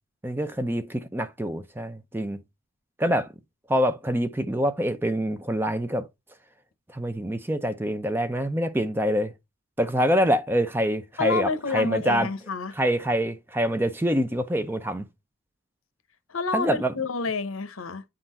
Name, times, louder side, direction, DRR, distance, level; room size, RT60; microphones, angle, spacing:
voice 1, 0.2-2.4 3.0-3.3 3.7-6.1 6.9-9.3 9.8-12.3 12.8-15.1 16.5-16.9, equal, 10° right, 0.5 m, -25 dB
voice 2, 11.2-12.7 16.3-18.0, left 4 dB, 75° left, 0.9 m, -29 dB
8.9 x 3.8 x 4.2 m
head